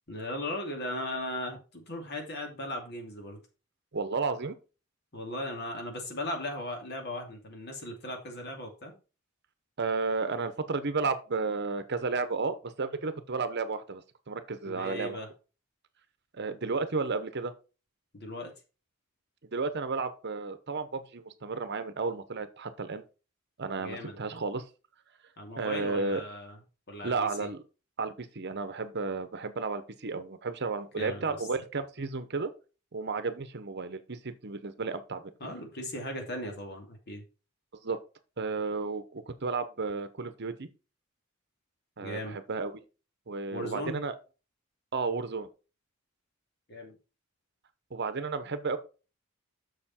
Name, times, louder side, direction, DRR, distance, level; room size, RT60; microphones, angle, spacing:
voice 1, 0.1-3.4 5.1-9.0 14.6-15.3 18.1-18.5 23.8-24.2 25.4-26.6 26.9-27.5 31.0-31.5 35.4-37.2 42.0-42.4 43.5-44.0 46.7-46.9, left 1 dB, 55° left, 3 dB, 2.5 m, -37 dB
voice 2, 3.9-4.6 9.8-15.2 16.3-17.5 19.5-23.0 23.6-24.6 25.6-26.2 27.0-27.6 28.0-32.5 32.9-35.3 37.8-38.0 38.4-40.7 42.0-42.8 43.3-44.1 44.9-45.5 47.9-48.8, right 4 dB, 55° right, 11 dB, 0.9 m, -33 dB
6.9 x 6.5 x 4.3 m, 0.32 s
head